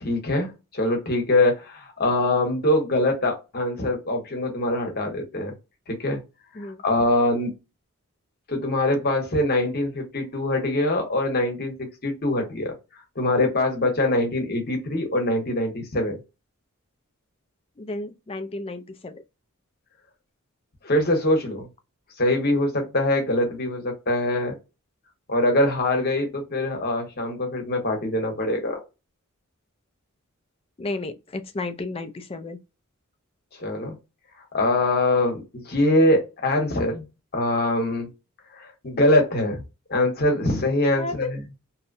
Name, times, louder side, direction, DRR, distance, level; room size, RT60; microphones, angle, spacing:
voice 1, 0.0-5.5 5.9-6.2 6.8-7.5 8.5-12.7 13.2-16.2 20.8-21.7 22.2-24.5 25.3-28.8 33.6-33.9 34.5-37.0 37.3-38.1 38.6-39.6 39.9-41.4, left 1 dB, 45° left, 1.0 m, -23 dB
voice 2, 17.8-19.2 30.8-32.6 41.0-41.3, left 2 dB, 25° left, 0.4 m, -33 dB
2.8 x 2.1 x 2.5 m
head